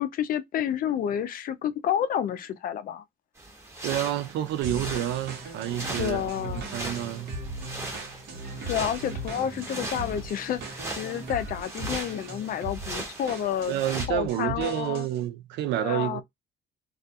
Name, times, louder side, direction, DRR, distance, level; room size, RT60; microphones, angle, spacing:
voice 1, 0.0-3.0 5.9-6.7 8.7-13.8 14.1-15.1 15.8-16.2, left 9 dB, 55° left, 0.4 m, -30 dB
sound 1, 3.4-14.1, right 2 dB, 15° right, 1.0 m, -39 dB
voice 2, 3.8-7.3 13.7-16.2, right 12 dB, 80° right, 0.4 m, -29 dB
sound 2, 4.6-15.2, right 1 dB, 60° right, 1.0 m, -38 dB
2.3 x 2.2 x 2.6 m
cardioid pair, 105°, 18 cm